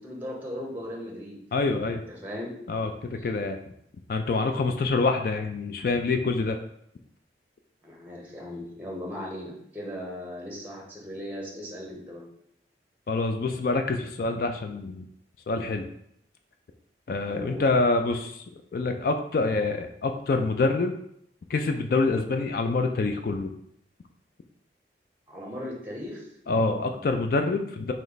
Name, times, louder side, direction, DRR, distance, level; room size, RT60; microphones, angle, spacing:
voice 1, 0.0-1.4 1.9-2.5 7.8-12.3 17.3-17.6 25.3-26.3, left 1 dB, 10° right, -2 dB, 0.8 m, -38 dB
voice 2, 1.5-2.0 2.7-3.6 4.1-6.6 13.1-15.0 15.5-15.8 17.1-18.4 18.7-20.9 21.5-23.5 26.5-27.9, left 3 dB, 50° left, 6 dB, 0.3 m, -26 dB
3.3 x 3.0 x 3.9 m, 0.73 s
head